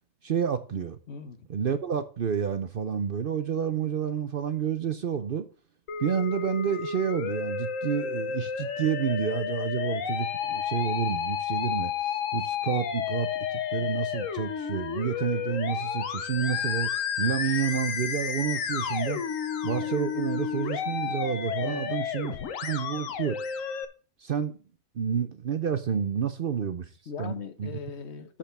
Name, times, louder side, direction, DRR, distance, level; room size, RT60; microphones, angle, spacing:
voice 1, 0.2-1.0 1.5-5.5 6.0-11.9 12.3-16.9 17.2-19.2 19.6-22.4 22.6-23.4 24.2-24.5 25.0-26.9 27.2-27.8, right 7 dB, 55° right, 0.8 m, -29 dB
voice 2, 1.1-1.5 13.8-13.9 19.1-19.2 21.6-21.9 27.1-28.4, left 6 dB, 60° left, 1.2 m, -39 dB
Musical instrument, 5.9-23.9, left 8 dB, 90° left, 1.3 m, -31 dB
6.7 x 5.9 x 6.8 m
omnidirectional pair, 1.3 m